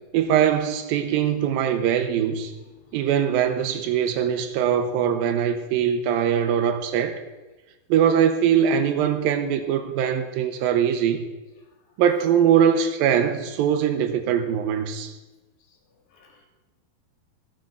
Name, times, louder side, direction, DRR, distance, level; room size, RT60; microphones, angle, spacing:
voice 1, 0.1-2.5 2.9-7.2 7.9-11.3 12.0-15.1, right 8 dB, 80° right, 2.4 m, -22 dB
voice 2, 2.0-3.0 11.6-11.7 15.7-16.5, left 4 dB, 70° left, 3.4 m, -55 dB
14.0 x 7.6 x 6.0 m
omnidirectional pair, 4.4 m